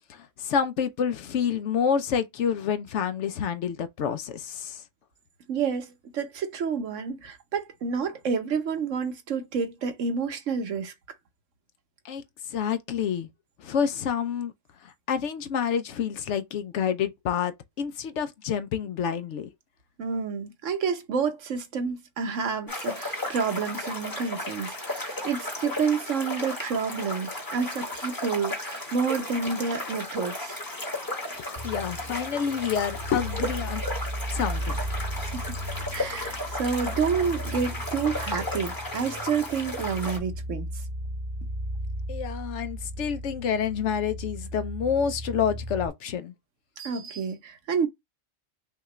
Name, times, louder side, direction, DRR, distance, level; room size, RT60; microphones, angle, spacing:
voice 1, 0.1-4.8 12.0-12.2 12.5-13.3 13.6-14.5 14.8-19.5 31.4-33.8 34.3-34.8 42.1-46.3, left 7 dB, 70° left, 0.9 m, -28 dB
voice 2, 5.5-10.9 20.0-30.6 35.2-35.5 35.9-40.8 46.8-47.9, right 5 dB, 70° right, 1.2 m, -29 dB
sound 1, 22.7-40.2, left 1 dB, 15° left, 1.1 m, -34 dB
sound 2, 31.6-45.9, equal, 30° right, 0.6 m, -35 dB
5.7 x 2.4 x 3.1 m
omnidirectional pair, 1.4 m